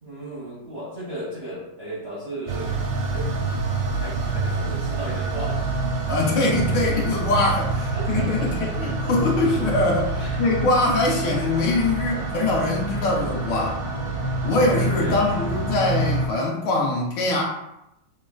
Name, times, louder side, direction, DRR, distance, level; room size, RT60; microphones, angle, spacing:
voice 1, 0.0-2.7 3.1-3.3 3.9-5.6 6.3-6.9 7.9-9.1 10.2-10.4 14.9-15.5, right 1 dB, 60° right, -7 dB, 0.7 m, -35 dB
sound 1, 2.5-16.3, right 3 dB, 85° right, 1.3 m, -27 dB
voice 2, 6.1-13.8 14.4-17.4, left 2 dB, 75° left, -2 dB, 1.5 m, -23 dB
6.1 x 2.1 x 2.4 m, 0.84 s
omnidirectional pair, 2.1 m